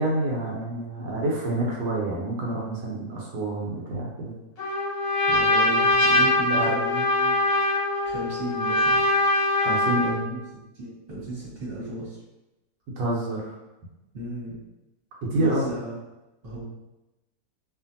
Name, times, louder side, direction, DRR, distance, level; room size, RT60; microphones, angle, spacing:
voice 1, 0.0-4.4 6.5-6.7 9.6-10.3 13.0-13.6 15.3-15.7, right 2 dB, 80° right, -3 dB, 1.3 m, -27 dB
Trumpet, 4.6-10.2, left 2 dB, 45° left, 0.8 m, -22 dB
voice 2, 5.3-7.3 8.0-9.0 10.3-10.4 10.7-12.2 14.1-14.6 15.3-15.9 16.4-16.6, right 1 dB, 35° right, -7 dB, 1.3 m, -34 dB
2.9 x 2.5 x 2.6 m, 0.99 s
omnidirectional pair, 1.9 m